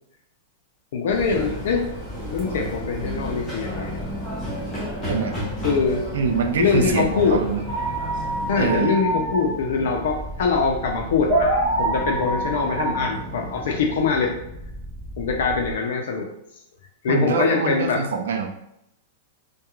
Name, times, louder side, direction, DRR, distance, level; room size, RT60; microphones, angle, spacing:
voice 1, 0.9-1.9 2.3-4.1 5.6-6.0 6.6-7.4 8.5-14.4 15.2-16.3 17.0-18.0, left 5 dB, 60° left, 1 dB, 0.5 m, -23 dB
sound 1, 1.1-8.8, equal, 10° left, 0.8 m, -32 dB
sound 2, 2.0-15.7, right 1 dB, 20° right, 0.8 m, -37 dB
voice 2, 6.1-7.6 8.6-9.0 17.1-18.5, right 5 dB, 85° right, 5 dB, 0.4 m, -24 dB
sound 3, 7.7-14.3, right 2 dB, 45° right, 1.4 m, -26 dB
2.3 x 2.2 x 2.9 m, 0.80 s
supercardioid pair, 175°, 0 cm